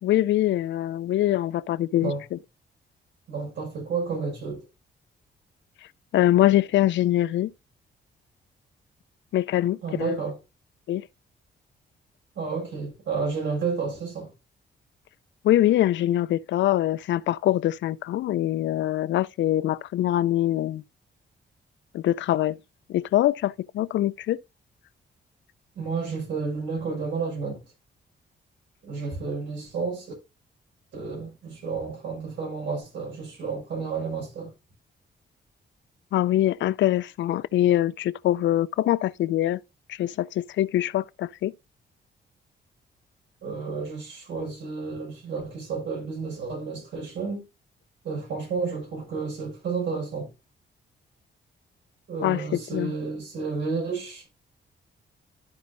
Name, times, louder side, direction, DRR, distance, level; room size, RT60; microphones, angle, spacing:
voice 1, 0.0-2.4 6.1-7.5 9.3-10.2 10.9-11.1 15.4-20.8 21.9-22.6 22.9-24.4 36.1-39.6 39.9-41.5 52.2-52.9, left 13 dB, 80° left, 0.4 m, -23 dB
voice 2, 3.3-4.6 9.8-10.4 12.4-14.3 25.8-27.6 28.8-30.1 30.9-34.5 43.4-47.4 48.0-50.3 52.1-54.3, right 5 dB, 75° right, 5.5 m, -31 dB
13.0 x 5.2 x 2.6 m
wide cardioid pair, 160°, 19 cm